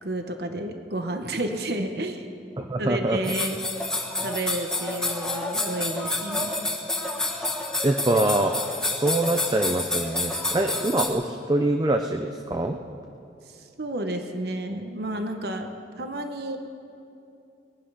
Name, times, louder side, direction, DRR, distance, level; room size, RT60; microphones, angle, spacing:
voice 1, 0.0-2.2 2.8-3.6 4.2-6.7 13.5-15.7 16.0-16.6, right 1 dB, 65° right, 6 dB, 1.0 m, -31 dB
voice 2, 2.6-3.2 7.8-8.5 8.9-12.8, right 1 dB, 20° right, 5 dB, 0.5 m, -24 dB
sound 1, 3.2-11.1, left 2 dB, 5° left, 1.4 m, -29 dB
22.0 x 10.5 x 5.6 m, 2.7 s
head